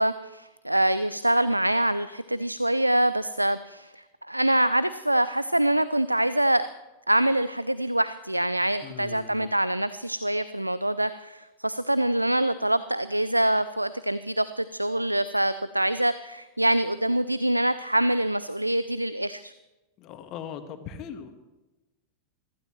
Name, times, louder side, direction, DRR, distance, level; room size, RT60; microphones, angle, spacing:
voice 1, 0.0-6.7 7.1-19.5, right 1 dB, 85° right, 15 dB, 0.4 m, -25 dB
voice 2, 8.8-9.5 20.0-21.3, left 7 dB, 35° left, 7 dB, 1.6 m, -39 dB
24.0 x 15.0 x 3.1 m, 1.1 s
figure-of-eight pair, 90°, 0 cm